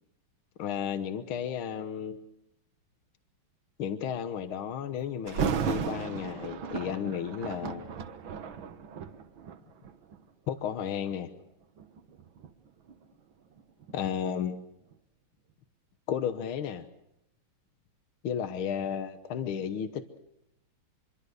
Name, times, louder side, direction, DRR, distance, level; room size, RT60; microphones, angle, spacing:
voice 1, 0.6-2.2 3.8-7.9 10.5-11.3 13.9-14.6 16.1-16.9 18.2-20.2, left 8 dB, 75° left, 10 dB, 2.0 m, -33 dB
Thunder, 5.3-10.2 10.9-11.1 11.8-14.6 14.9-15.0, right 7 dB, 70° right, 1.9 m, -35 dB
25.5 x 23.5 x 6.5 m, 0.83 s
omnidirectional pair, 2.3 m